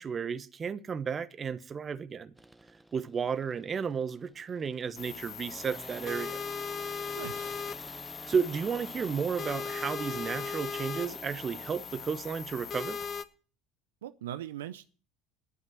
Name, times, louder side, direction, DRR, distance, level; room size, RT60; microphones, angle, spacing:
voice 1, 0.0-2.3 2.9-6.4 8.3-13.0, right 6 dB, 35° right, 1.0 m, -33 dB
sound 1, 2.4-12.4, right 1 dB, 10° right, 0.8 m, -50 dB
sound 2, 5.0-13.2, left 6 dB, 40° left, 1.1 m, -38 dB
voice 2, 7.2-7.5 14.0-14.9, right 12 dB, 80° right, 0.5 m, -40 dB
11.0 x 7.2 x 7.8 m
hypercardioid pair, 65°, 0 cm